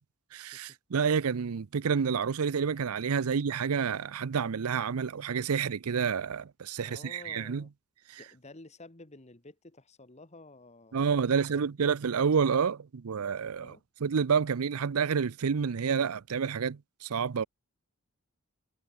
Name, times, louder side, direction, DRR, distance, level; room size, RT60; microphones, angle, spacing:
voice 1, 0.3-7.6 10.9-13.8 14.0-17.4, right 6 dB, 85° right, 0.5 m, -29 dB
voice 2, 6.8-7.7 8.1-11.9 13.6-13.8, left 2 dB, 30° left, 1.6 m, -52 dB
head